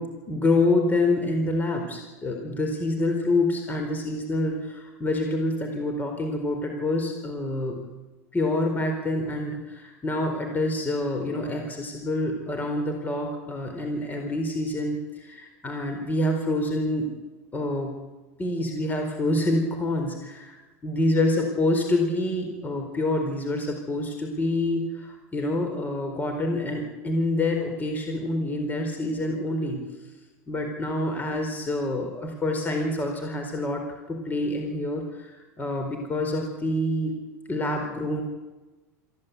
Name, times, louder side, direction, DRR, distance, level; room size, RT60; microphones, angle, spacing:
voice 1, 0.0-7.8 8.3-17.1 17.5-18.0 18.4-20.6 20.8-29.8 30.5-33.8 34.1-37.1 37.5-38.2, left 2 dB, 20° left, 3 dB, 4.2 m, -27 dB
23.5 x 15.5 x 8.3 m, 1.1 s
hypercardioid pair, 95°, 8 cm